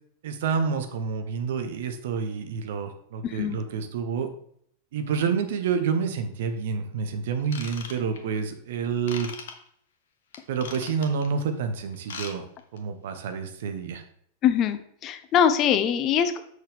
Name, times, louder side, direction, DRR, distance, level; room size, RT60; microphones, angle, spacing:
voice 1, 0.2-4.3 4.9-9.3 10.5-12.4 12.7-14.0, right 6 dB, 55° right, 8 dB, 1.0 m, -28 dB
voice 2, 3.2-3.6 14.4-16.4, left 8 dB, 35° left, 10 dB, 0.7 m, -23 dB
Ratchet pawl / Tools, 7.4-8.4 9.1-9.5 10.3-11.3 11.9-12.3 12.6-12.8 13.3-13.4, left 6 dB, 60° left, 1.0 m, -39 dB
7.3 x 6.3 x 3.5 m, 0.66 s
figure-of-eight pair, 90°, 0 cm